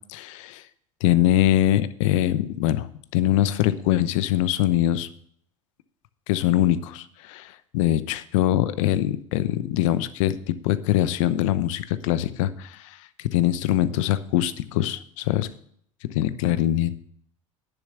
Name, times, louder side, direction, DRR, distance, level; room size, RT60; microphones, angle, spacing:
voice 1, 0.1-0.6 1.0-2.9 3.1-5.1 6.3-15.5 16.0-17.0, left 13 dB, 65° left, 14 dB, 0.9 m, -23 dB
10.5 x 7.2 x 6.7 m, 0.65 s
hypercardioid pair, 85°, 17 cm